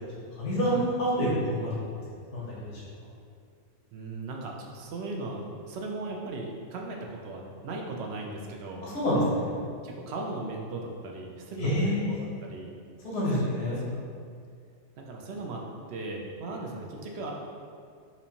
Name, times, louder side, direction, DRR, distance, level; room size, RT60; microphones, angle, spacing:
voice 1, 0.3-1.9 2.3-2.8 8.8-9.6 11.6-12.2 13.0-13.8, equal, 75° left, -7 dB, 1.2 m, -27 dB
voice 2, 3.9-8.8 9.8-12.7 13.3-13.5 13.9-14.1 15.0-15.6 15.9-17.3, right 2 dB, 70° right, 0 dB, 0.8 m, -37 dB
4.3 x 2.6 x 2.8 m, 2.2 s
omnidirectional pair, 1.2 m